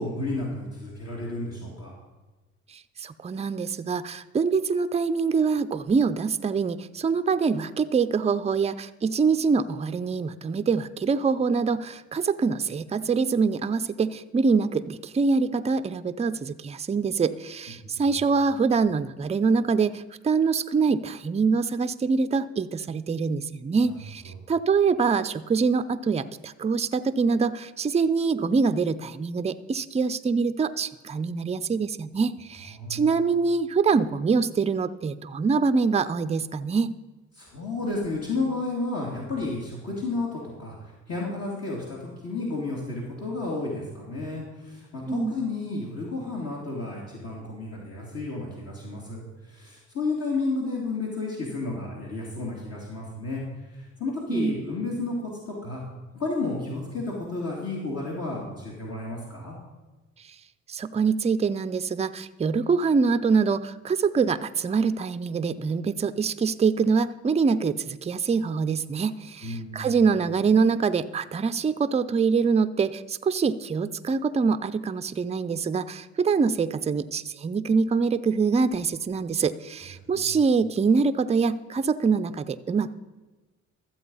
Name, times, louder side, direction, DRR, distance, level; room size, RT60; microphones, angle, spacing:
voice 1, 0.0-1.9 17.8-17.9 23.9-24.0 32.7-33.2 37.4-53.4 53.7-55.2 55.5-55.8 56.1-59.5 69.4-69.9 80.1-80.3, left 3 dB, 55° left, -4 dB, 2.6 m, -32 dB
voice 2, 3.0-36.9 45.1-45.4 54.3-54.6 60.7-82.9, right 5 dB, 20° right, 11 dB, 0.5 m, -24 dB
13.0 x 7.7 x 5.5 m, 1.2 s
cardioid pair, 90°, 30 cm